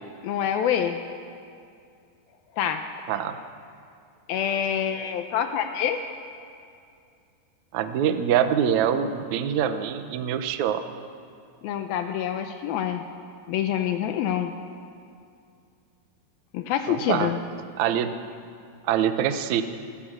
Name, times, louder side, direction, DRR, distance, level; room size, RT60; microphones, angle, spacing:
voice 1, 0.2-1.0 2.6-2.9 4.3-6.0 11.6-13.0 13.5-14.5 16.5-17.4, left 9 dB, 75° left, 7 dB, 2.3 m, -26 dB
voice 2, 7.7-10.8 16.9-17.3 17.8-18.1 18.8-19.6, right 9 dB, 90° right, 9 dB, 1.6 m, -24 dB
28.0 x 14.5 x 6.6 m, 2.4 s
omnidirectional pair, 4.9 m